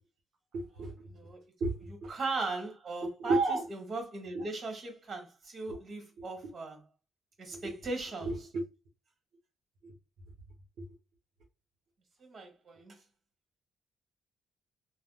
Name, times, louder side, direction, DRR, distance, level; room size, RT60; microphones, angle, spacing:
voice 1, 0.5-0.9 1.6-2.1 3.0-3.6 4.3-4.5 6.2-6.3 7.5-7.6 8.3-8.6 9.8-9.9, right 3 dB, 70° right, 0.9 m, -32 dB
voice 2, 1.1-1.4 2.1-3.4 3.7-6.8 7.4-8.3 12.2-13.0, right 3 dB, 50° right, 1.6 m, -38 dB
3.5 x 2.2 x 2.3 m
cardioid pair, 90°, 0 cm